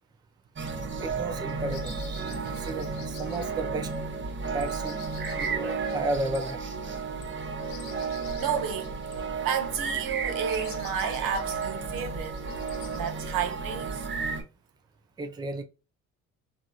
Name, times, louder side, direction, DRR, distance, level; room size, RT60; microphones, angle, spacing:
sound 1, 0.6-14.4, right 4 dB, 35° right, 0.8 m, -33 dB
voice 1, 1.0-3.9 4.5-5.0 5.3-6.6 12.7-13.1 15.2-15.6, right 2 dB, 10° right, 0.4 m, -33 dB
sound 2, 1.5-13.4, left 8 dB, 75° left, 0.6 m, -50 dB
voice 2, 8.3-9.0 9.4-12.4 12.9-14.1, right 7 dB, 70° right, 0.7 m, -31 dB
2.8 x 2.6 x 2.3 m
supercardioid pair, 70°, 36 cm